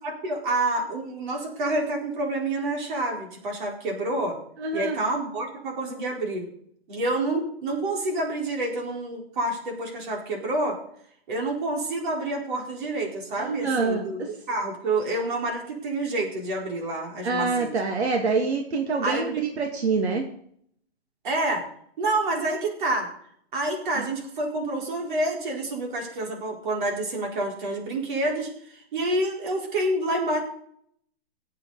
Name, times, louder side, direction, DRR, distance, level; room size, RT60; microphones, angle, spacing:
voice 1, 0.0-4.3 4.7-6.5 6.9-10.8 11.3-17.7 19.0-19.5 21.2-21.6 22.0-23.1 23.5-28.5 28.9-30.4, right 2 dB, 50° right, 0 dB, 4.5 m, -28 dB
voice 2, 4.6-5.0 13.4-14.3 17.2-20.2 24.0-24.1, right 4 dB, 85° right, 2 dB, 2.4 m, -26 dB
23.0 x 8.2 x 4.1 m, 0.66 s
hypercardioid pair, 160°, 32 cm